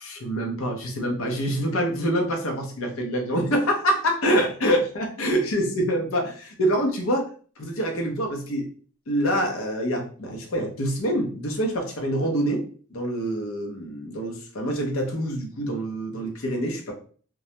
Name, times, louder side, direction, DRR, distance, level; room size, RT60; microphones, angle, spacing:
voice 1, 0.0-7.3 7.6-8.7 9.1-12.6 12.9-16.9, equal, 75° left, 1 dB, 0.7 m, -26 dB
2.2 x 2.1 x 2.8 m, 0.42 s
head